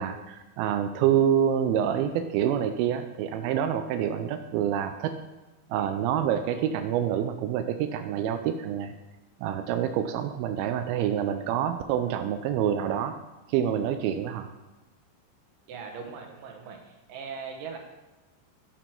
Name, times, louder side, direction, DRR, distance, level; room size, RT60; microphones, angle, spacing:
voice 1, 0.0-5.1 5.7-8.9 9.4-13.1 13.5-14.5, right 9 dB, 90° right, 8 dB, 2.4 m, -27 dB
voice 2, 15.7-17.8, right 5 dB, 70° right, 3 dB, 2.7 m, -40 dB
9.1 x 6.3 x 4.4 m, 1.1 s
omnidirectional pair, 4.2 m